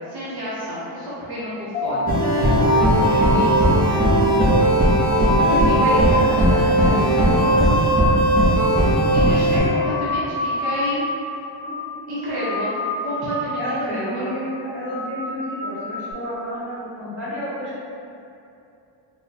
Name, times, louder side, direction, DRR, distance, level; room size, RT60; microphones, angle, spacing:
voice 1, 0.1-4.4 5.4-8.0 9.1-11.0 12.1-12.7 13.0-14.3, equal, 55° right, -9 dB, 0.7 m, -29 dB
sound 1, 1.7-8.7 9.0-9.5 9.8-11.2 11.5-12.0 12.3-13.7 14.1-14.4 14.8-16.1, left 2 dB, 65° left, 0.7 m, -26 dB
sound 2, 2.1-9.6, right 1 dB, 20° right, 0.4 m, -17 dB
voice 2, 11.6-12.1 13.6-17.9, equal, 5° right, -14 dB, 1.3 m, -31 dB
4.0 x 2.1 x 2.6 m, 2.7 s
cardioid pair, 165°, 46 cm